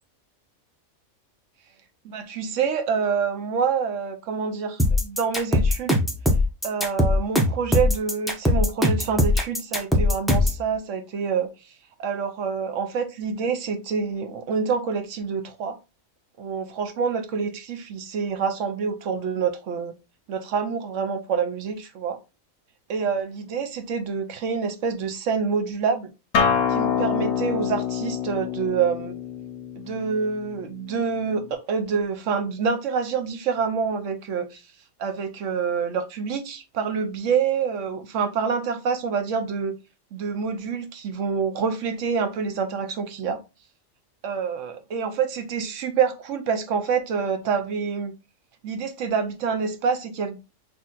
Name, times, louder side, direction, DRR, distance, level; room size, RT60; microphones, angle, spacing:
voice 1, 2.0-6.0 6.6-11.5 12.0-15.8 16.4-19.9 20.3-22.2 22.9-26.1 26.7-29.2 29.8-34.6 35.0-39.7 40.1-43.4 44.2-48.1 48.6-50.5, right 6 dB, 70° right, 1.1 m, -27 dB
sound 1, 4.8-10.6, left 1 dB, ahead, 0.7 m, -20 dB
Acoustic guitar, 26.3-31.5, left 7 dB, 70° left, 1.3 m, -26 dB
6.1 x 2.9 x 2.4 m
omnidirectional pair, 1.4 m